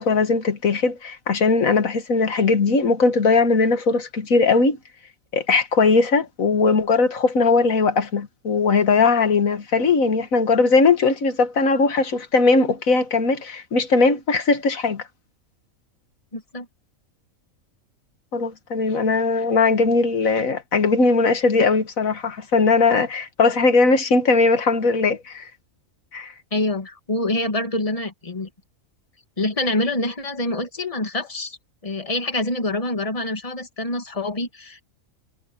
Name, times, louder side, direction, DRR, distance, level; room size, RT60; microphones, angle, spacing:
voice 1, 0.0-4.8 5.3-15.0 18.3-25.5 26.1-26.3, left 4 dB, 75° left, 2.1 m, -19 dB
voice 2, 16.3-16.7 26.5-28.5 29.4-31.6 31.8-34.8, left 2 dB, 25° left, 2.1 m, -26 dB
omnidirectional pair, 1.4 m